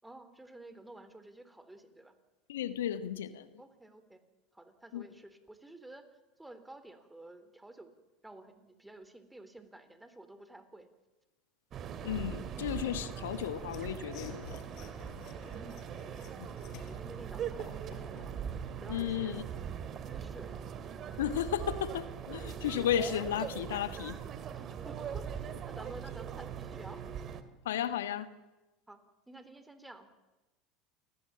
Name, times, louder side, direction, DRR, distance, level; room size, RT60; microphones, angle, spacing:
voice 1, 0.0-2.1 3.6-4.2 4.5-6.0 6.4-8.0 8.2-10.9 15.5-16.3 16.8-18.3 18.8-19.4 20.1-20.6 24.5-27.0 28.9-29.0 29.3-30.2, right 2 dB, 10° right, 10 dB, 3.8 m, -51 dB
voice 2, 2.5-3.5 4.9-5.0 12.0-14.6 16.4-16.5 18.9-19.4 21.2-24.2 27.6-28.3, left 10 dB, 80° left, 11 dB, 1.5 m, -34 dB
sound 1, 11.7-27.4, right 8 dB, 40° right, 2.7 m, -41 dB
Mechanisms / Sawing, 13.6-18.4, left 7 dB, 55° left, 5.0 m, -51 dB
29.0 x 19.5 x 8.8 m, 1.1 s
hypercardioid pair, 85°, 0 cm